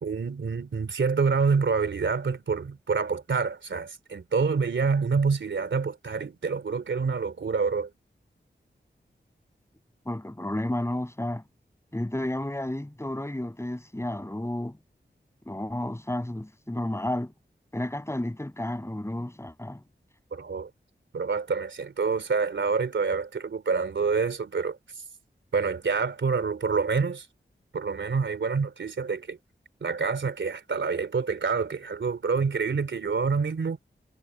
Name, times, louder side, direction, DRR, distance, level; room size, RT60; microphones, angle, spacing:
voice 1, 0.0-7.9 20.3-20.7 21.1-24.8 25.5-27.3 27.7-29.4 29.8-33.8, right 5 dB, 90° right, 3.1 m, -27 dB
voice 2, 10.1-11.4 11.9-14.8 15.5-17.3 17.7-19.8, left 1 dB, 15° left, 7.9 m, -32 dB
wide cardioid pair, 90°, 19 cm